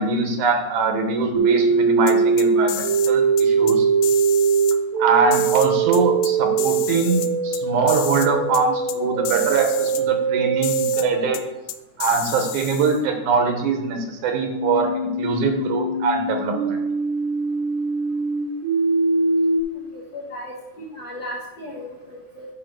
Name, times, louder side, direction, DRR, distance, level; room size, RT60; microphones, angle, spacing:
voice 1, 0.0-3.9 5.0-11.4 12.0-16.8, right 4 dB, 90° right, 4 dB, 2.6 m, -22 dB
sound 1, 1.3-11.1 14.4-19.6, right 5 dB, 70° right, 1.4 m, -21 dB
sound 2, 2.1-3.1 3.4-3.7 4.0-4.8 5.3-6.3 6.6-7.6 7.9-8.3 8.5-8.6 8.9-9.0 9.2-10.0 10.6-11.1 11.3-11.4 11.7-13.0, left 12 dB, 85° left, 2.0 m, -31 dB
voice 2, 19.9-22.5, left 1 dB, 65° left, -2 dB, 1.1 m, -36 dB
6.8 x 5.5 x 6.4 m, 1.1 s
omnidirectional pair, 3.4 m